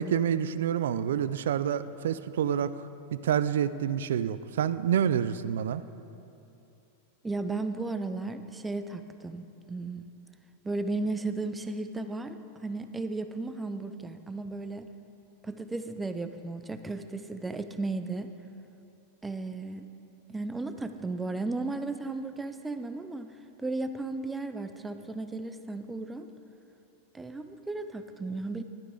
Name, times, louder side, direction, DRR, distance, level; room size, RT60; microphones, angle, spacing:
voice 1, 0.0-2.7 3.1-5.8, right 9 dB, 80° right, 14 dB, 0.4 m, -28 dB
voice 2, 7.2-10.1 10.6-12.4 12.6-14.9 15.4-18.3 19.2-19.9 20.3-26.3 27.1-28.6, right 3 dB, 10° right, 9 dB, 0.4 m, -35 dB
11.5 x 11.5 x 3.8 m, 2.8 s
supercardioid pair, 145°, 0 cm